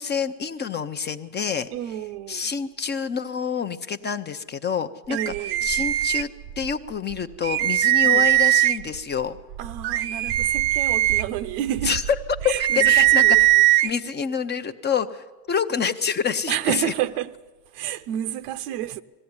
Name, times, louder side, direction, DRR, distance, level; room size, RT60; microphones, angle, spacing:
voice 1, 0.0-1.7 2.3-5.3 5.6-6.3 6.6-9.4 11.8-12.0 12.4-13.5 13.8-16.9, left 6 dB, 25° left, 0.7 m, -27 dB
voice 2, 1.7-2.5 5.1-5.7 8.0-8.3 9.6-12.0 12.4-13.4 16.5-17.3 17.7-19.0, right 11 dB, 75° right, 0.9 m, -30 dB
sound 1, 5.1-6.7 7.1-7.2 7.4-9.0 9.5-13.9, right 16 dB, 60° right, 0.5 m, -20 dB
20.0 x 15.5 x 9.6 m
supercardioid pair, 115°, 45 cm